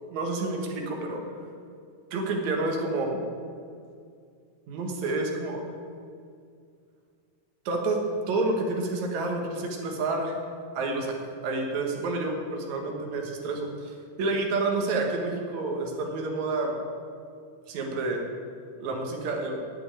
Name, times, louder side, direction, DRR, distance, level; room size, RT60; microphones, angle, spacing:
voice 1, 0.1-1.2 2.1-3.4 4.7-5.6 7.7-8.0 8.3-10.4 10.7-16.8 17.7-18.2 18.8-19.6, right 2 dB, 70° right, 1 dB, 2.8 m, -29 dB
8.9 x 8.3 x 9.0 m, 2.3 s
omnidirectional pair, 3.4 m